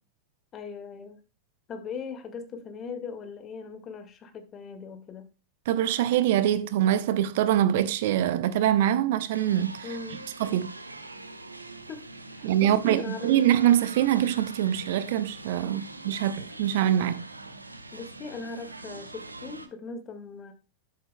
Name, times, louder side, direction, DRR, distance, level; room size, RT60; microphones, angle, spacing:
voice 1, 0.5-1.2 1.7-5.3 9.8-10.3 11.9-13.3 15.6-15.8 17.9-20.5, left 5 dB, 25° left, 1.8 m, -40 dB
voice 2, 5.7-9.9 10.4-10.7 12.4-17.3, right 11 dB, 55° right, 0.6 m, -24 dB
sound 1, 9.3-19.7, right 2 dB, 80° right, 0.9 m, -43 dB
12.5 x 7.4 x 2.2 m
figure-of-eight pair, 90°, 0 cm